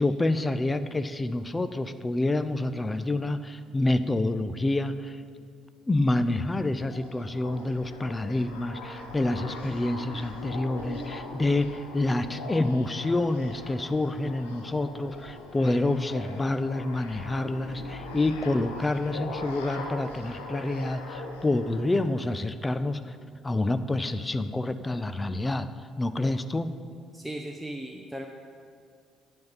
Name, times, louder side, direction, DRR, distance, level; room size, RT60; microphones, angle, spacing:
voice 1, 0.0-5.2 5.9-23.1 23.4-25.7 26.0-26.7, left 2 dB, 20° left, 12 dB, 0.6 m, -28 dB
sound 1, 6.7-22.0, left 3 dB, 85° left, 1.1 m, -41 dB
voice 2, 27.1-28.3, right 1 dB, 5° right, 2 dB, 0.9 m, -37 dB
11.0 x 5.4 x 7.3 m, 2.1 s
hypercardioid pair, 50°, 0 cm